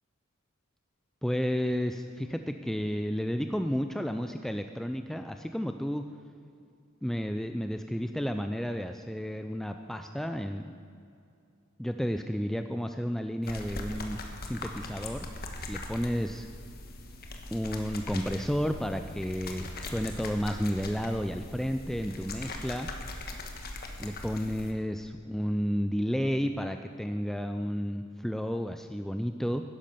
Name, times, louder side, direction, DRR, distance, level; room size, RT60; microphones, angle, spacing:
voice 1, 1.2-6.0 7.0-10.7 11.8-15.3 15.7-16.5 17.5-22.9 24.0-29.6, equal, ahead, 7 dB, 0.4 m, -32 dB
sound 1, 13.4-24.7, left 2 dB, 50° left, 1.4 m, -40 dB
11.0 x 10.5 x 6.8 m, 2.5 s
head